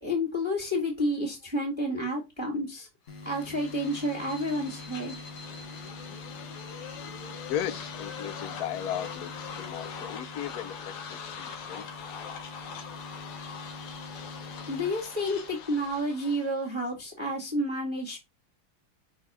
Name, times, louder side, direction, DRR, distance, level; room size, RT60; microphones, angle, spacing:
voice 1, 0.0-2.9 3.3-5.1 14.7-18.2, equal, 15° right, 1.8 m, -30 dB
sound 1, 3.1-16.7, left 6 dB, 90° left, 2.1 m, -42 dB
sound 2, 3.1-16.0, left 2 dB, 40° left, 1.0 m, -45 dB
voice 2, 7.5-11.8, left 10 dB, 65° left, 0.9 m, -36 dB
5.9 x 4.1 x 5.5 m
omnidirectional pair, 2.4 m